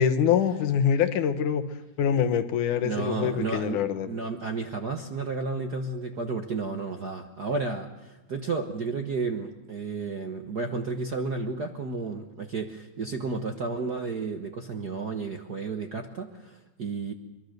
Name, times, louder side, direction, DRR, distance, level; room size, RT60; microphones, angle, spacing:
voice 1, 0.0-1.6 2.0-4.1, left 8 dB, 85° left, 9 dB, 2.7 m, -24 dB
voice 2, 2.8-3.8 4.1-17.1, right 4 dB, 55° right, 4 dB, 1.1 m, -32 dB
24.0 x 23.0 x 6.6 m, 1.1 s
omnidirectional pair, 3.5 m